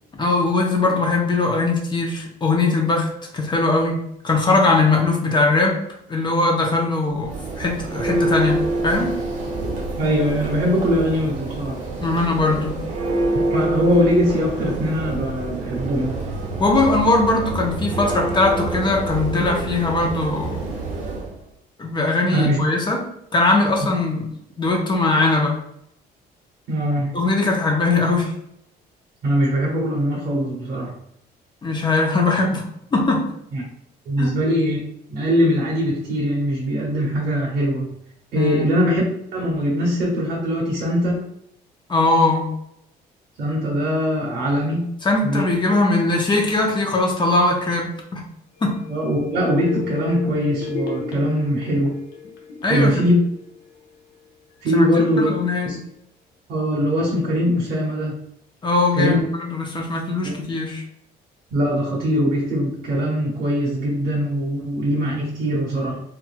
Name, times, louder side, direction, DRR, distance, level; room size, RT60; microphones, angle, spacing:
voice 1, 0.2-5.8 6.1-9.2 12.0-12.8 16.6-20.6 21.8-23.1 23.3-24.3 24.6-25.6 27.1-28.3 31.6-32.6 32.9-33.3 34.2-34.3 38.3-38.7 41.9-42.5 45.0-48.2 48.6-48.8 52.6-52.9 54.7-55.8 58.6-60.8, left 3 dB, 25° left, 0 dB, 0.9 m, -20 dB
Church bell, 7.1-21.3, right 2 dB, 45° right, 1.1 m, -27 dB
voice 2, 10.0-11.8 13.3-16.2 22.3-22.6 23.8-23.9 26.7-27.1 29.2-30.9 33.5-33.6 34.0-34.8 35.1-37.9 38.3-39.0 39.3-41.2 43.4-44.8 45.2-45.5 48.9-51.9 52.7-53.2 54.6-55.3 55.6-55.8 56.5-58.2 58.9-59.2 60.2-60.4 61.5-66.0, equal, 65° right, -3 dB, 1.5 m, -21 dB
sound 1, 48.6-54.2 54.6-54.7, left 5 dB, 70° left, 1.1 m, -34 dB
4.2 x 2.6 x 2.3 m, 0.75 s
cardioid pair, 110°, 17 cm